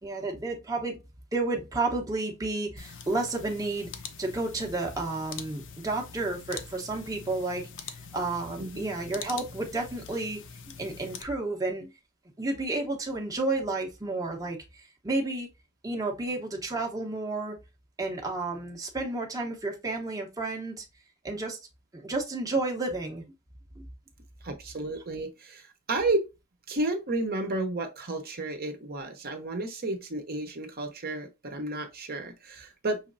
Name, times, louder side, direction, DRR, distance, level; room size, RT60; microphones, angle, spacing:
voice 1, 0.0-1.0 1.3-3.9 4.2-10.4 10.8-11.9 12.4-15.5 15.8-17.6 18.0-20.8 21.2-21.6 21.9-23.2 23.8-23.9, right 2 dB, 15° right, 0.8 m, -31 dB
sound 1, 2.8-11.2, left 6 dB, 60° left, 0.6 m, -44 dB
voice 2, 24.4-26.2 26.7-33.0, right 2 dB, 45° right, 0.9 m, -32 dB
5.6 x 3.1 x 2.5 m
head